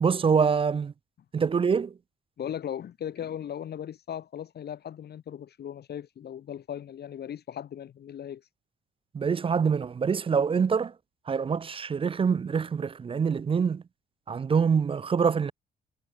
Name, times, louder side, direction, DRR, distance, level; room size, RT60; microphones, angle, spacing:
voice 1, 0.0-0.9 1.3-1.9 9.1-10.9 11.3-13.8 14.3-15.5, right 6 dB, 25° right, 0.4 m, -25 dB
voice 2, 2.4-8.4, left 9 dB, 55° left, 1.1 m, -37 dB
cardioid pair, 90°, 20 cm